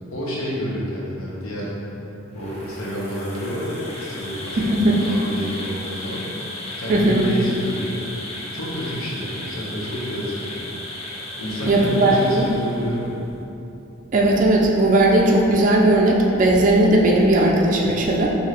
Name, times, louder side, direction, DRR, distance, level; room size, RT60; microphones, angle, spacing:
voice 1, 0.1-1.7 2.3-6.3 6.8-8.0 8.5-10.7 11.4-13.2, equal, 75° left, -5 dB, 0.9 m, -29 dB
Insect, 2.3-13.1, left 1 dB, 30° left, 0.7 m, -35 dB
voice 2, 4.6-5.0 6.9-7.2 11.7-12.5 14.1-18.3, right 1 dB, 35° right, -2 dB, 0.3 m, -17 dB
4.8 x 2.7 x 2.9 m, 2.9 s
head